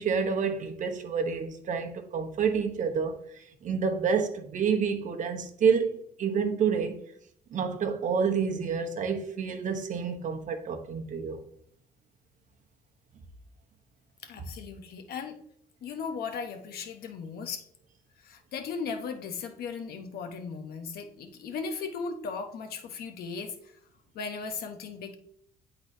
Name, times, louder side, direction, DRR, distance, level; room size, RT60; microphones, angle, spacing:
voice 1, 0.0-7.0 7.5-11.4, right 6 dB, 50° right, 1.0 m, -28 dB
voice 2, 14.2-15.4 15.8-17.6 18.2-23.5 24.1-25.1, left 5 dB, 65° left, 1.0 m, -37 dB
10.5 x 3.9 x 2.7 m
cardioid pair, 110°, 17 cm